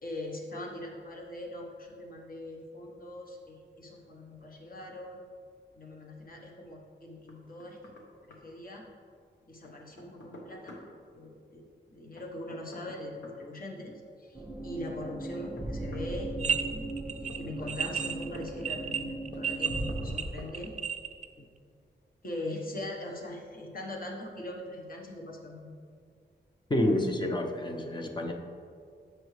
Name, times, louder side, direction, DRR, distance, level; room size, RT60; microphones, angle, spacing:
voice 1, 0.0-5.2 5.7-7.9 8.2-8.9 9.5-10.8 11.1-16.9 17.2-20.7 22.2-25.7, left 1 dB, 50° left, 0 dB, 1.1 m, -41 dB
Knock, 7.3-8.1 8.3-8.4 9.6-10.9 12.2-13.4 14.9-16.1 17.3-18.5 19.3-20.1 20.4-20.5, left 2 dB, 75° left, 1.0 m, -49 dB
sound 1, 14.3-20.1, right 1 dB, ahead, 1.1 m, -38 dB
sound 2, 16.4-16.6 16.9-21.2, right 7 dB, 40° right, 0.4 m, -32 dB
voice 2, 26.7-28.3, left 1 dB, 25° left, 3 dB, 0.7 m, -28 dB
7.9 x 6.1 x 3.2 m, 2.3 s
cardioid pair, 80°, 19 cm